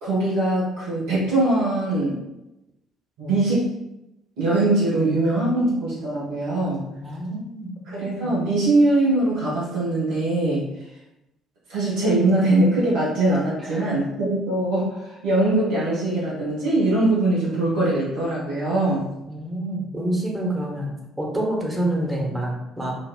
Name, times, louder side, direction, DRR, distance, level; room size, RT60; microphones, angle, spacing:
voice 1, 0.0-2.2 3.2-3.7 4.4-6.8 7.9-10.6 11.7-19.1, right 2 dB, 70° right, -8 dB, 1.0 m, -22 dB
voice 2, 6.9-7.7 8.1-8.4 13.6-13.8 19.2-23.0, right 1 dB, 15° right, -2 dB, 1.0 m, -28 dB
4.0 x 2.4 x 2.2 m, 0.90 s
hypercardioid pair, 50°, 0 cm